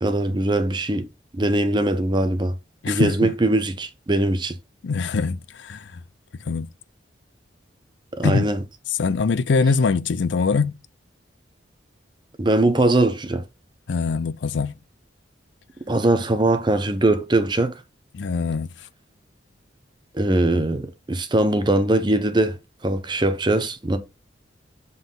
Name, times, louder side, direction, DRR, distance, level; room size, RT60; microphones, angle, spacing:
voice 1, 0.0-1.1 1.3-2.5 2.9-4.5 8.2-8.6 12.4-13.4 15.9-17.7 20.1-24.0, right 2 dB, 25° right, 0.7 m, -21 dB
voice 2, 2.8-3.3 4.8-6.0 6.4-6.7 8.2-8.5 9.0-10.8 13.9-14.7 18.1-18.7, left 4 dB, 75° left, 0.4 m, -23 dB
7.3 x 4.0 x 3.7 m
head